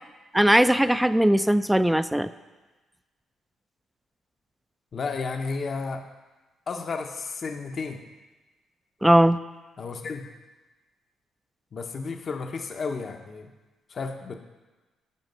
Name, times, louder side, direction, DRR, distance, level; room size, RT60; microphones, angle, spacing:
voice 1, 0.3-2.3 9.0-9.4, right 1 dB, 5° right, 13 dB, 0.4 m, -19 dB
voice 2, 4.9-6.0 6.7-8.0 9.8-10.2 11.7-13.5 13.9-14.4, left 4 dB, 45° left, 5 dB, 0.7 m, -32 dB
11.0 x 5.2 x 6.7 m, 1.2 s
cardioid pair, 90°, 0 cm